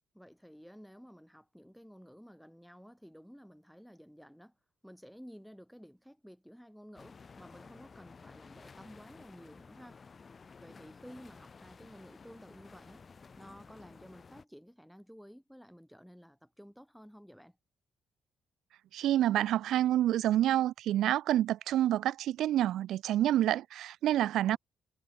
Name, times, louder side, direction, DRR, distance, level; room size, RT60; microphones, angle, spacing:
voice 1, 0.1-4.6 4.8-10.0 10.6-13.0 13.4-17.6 24.4-24.6, equal, ahead, 5.4 m, -53 dB
sound 1, 6.9-14.4, left 5 dB, 35° left, 5.3 m, -54 dB
voice 2, 18.9-24.6, right 12 dB, 80° right, 1.1 m, -28 dB
cardioid pair, 90°, 0 cm